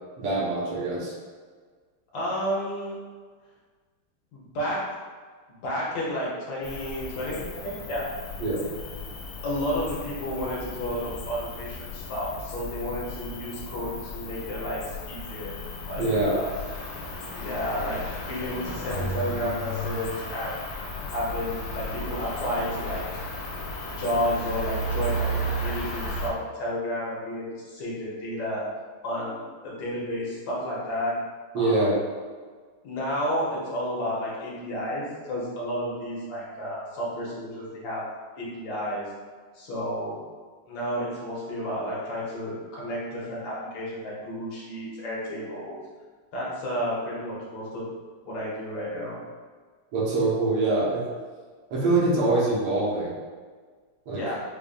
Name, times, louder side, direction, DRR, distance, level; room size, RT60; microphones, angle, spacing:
voice 1, 0.2-1.1 8.4-8.6 16.0-16.4 31.5-32.0 49.9-51.0 51.7-53.1 54.1-54.2, right 2 dB, 85° right, -7 dB, 2.0 m, -24 dB
voice 2, 2.1-3.0 4.3-4.8 5.6-8.1 9.4-15.6 15.9-16.5 17.4-18.0 18.2-20.6 21.1-23.0 24.0-28.7 29.0-31.2 31.5-31.9 32.8-38.1 38.4-39.1 39.5-40.2 40.7-45.8 46.3-47.9 48.2-49.2 54.1-54.4, equal, 65° left, -6 dB, 1.5 m, -31 dB
Cricket, 6.6-26.3, equal, 85° left, 1.5 m, -34 dB
5.0 x 2.5 x 2.4 m, 1.5 s
omnidirectional pair, 2.4 m